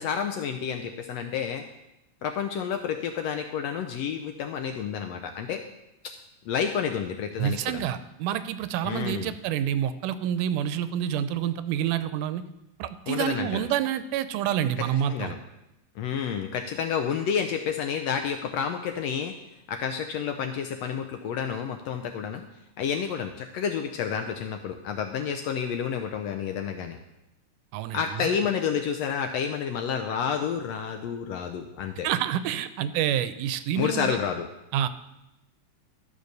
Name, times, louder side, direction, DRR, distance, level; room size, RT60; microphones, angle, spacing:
voice 1, 0.0-1.6 2.2-5.6 6.5-7.9 8.8-9.3 13.1-13.7 15.1-15.4 16.0-19.3 19.7-22.4 22.8-27.0 27.9-32.1 33.8-34.5, left 7 dB, 75° left, 5 dB, 1.6 m, -30 dB
voice 2, 7.4-12.4 12.8-15.3 27.7-28.3 32.0-34.2 34.7-34.9, right 10 dB, 90° right, 13 dB, 2.2 m, -28 dB
12.5 x 5.4 x 6.6 m, 0.91 s
omnidirectional pair, 3.5 m